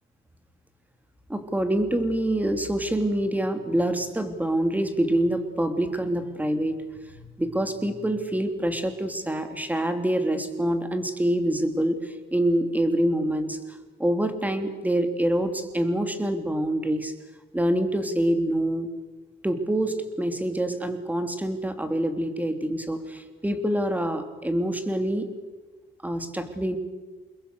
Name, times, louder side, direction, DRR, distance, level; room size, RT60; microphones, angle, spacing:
voice 1, 1.3-17.1 17.5-18.9 19.4-25.3 26.0-26.8, right 1 dB, 10° right, 7 dB, 3.1 m, -26 dB
29.0 x 22.0 x 6.9 m, 1.2 s
cardioid pair, 90°, 20 cm